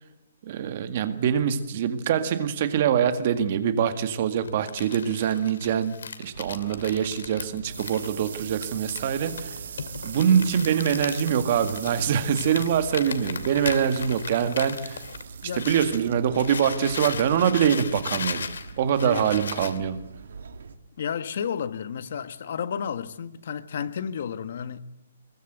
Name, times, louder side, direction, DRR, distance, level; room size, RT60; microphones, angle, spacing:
voice 1, 0.4-9.6 10.0-15.0 15.5-20.0, right 8 dB, 35° right, 1.9 m, -24 dB
Crumpling crinkling, 4.4-16.0 16.3-19.8, left 5 dB, 75° left, 2.7 m, -37 dB
sound 1, 6.3-20.7, right 4 dB, 65° right, 2.8 m, -44 dB
sound 2, 7.1-18.2, right 8 dB, 50° right, 1.6 m, -43 dB
voice 2, 19.0-19.3 21.0-24.8, left 7 dB, 45° left, 1.5 m, -32 dB
23.5 x 22.0 x 8.1 m
hypercardioid pair, 175°, 0 cm